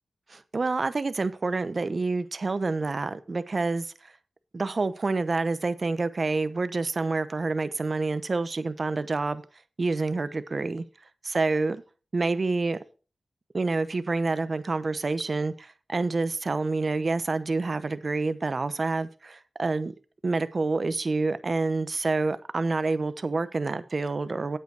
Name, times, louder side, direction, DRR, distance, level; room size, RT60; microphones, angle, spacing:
voice 1, 0.3-3.9 4.5-9.4 9.8-10.8 11.2-11.8 12.1-12.8 13.5-19.9 20.2-24.6, right 3 dB, 55° right, 0.9 m, -28 dB
9.4 x 8.0 x 4.7 m
cardioid pair, 45°, 0 cm